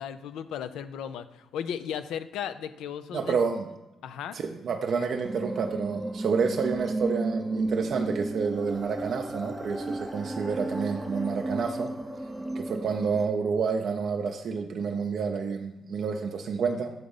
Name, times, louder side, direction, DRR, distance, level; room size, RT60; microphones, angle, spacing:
voice 1, 0.0-3.4 4.0-4.4, left 8 dB, 85° left, 12 dB, 0.4 m, -35 dB
voice 2, 3.1-3.7 4.3-11.9 12.5-16.9, right 5 dB, 60° right, 3 dB, 0.5 m, -29 dB
sound 1, 5.2-13.2, right 2 dB, 10° right, 0.6 m, -34 dB
7.9 x 3.8 x 5.5 m, 1.0 s
cardioid pair, 90°, 0 cm